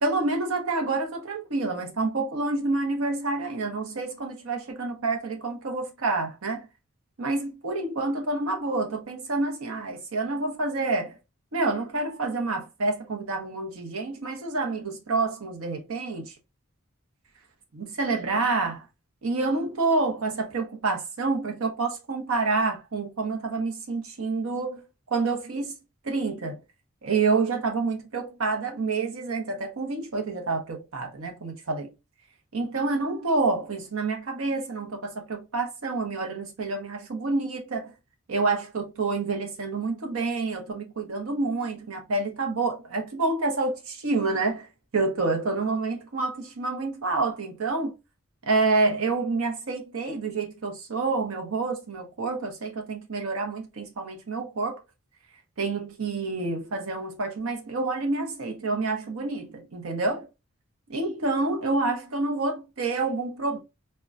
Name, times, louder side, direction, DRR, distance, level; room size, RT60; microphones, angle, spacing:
voice 1, 0.0-6.7 7.2-11.1 11.5-16.3 17.7-18.8 19.2-24.8 25.1-25.8 26.0-26.6 27.0-31.9 32.5-37.9 38.3-44.7 44.9-47.9 48.5-54.8 55.6-60.3 60.9-63.6, right 3 dB, 75° right, 0.8 m, -28 dB
4.2 x 2.2 x 2.4 m
head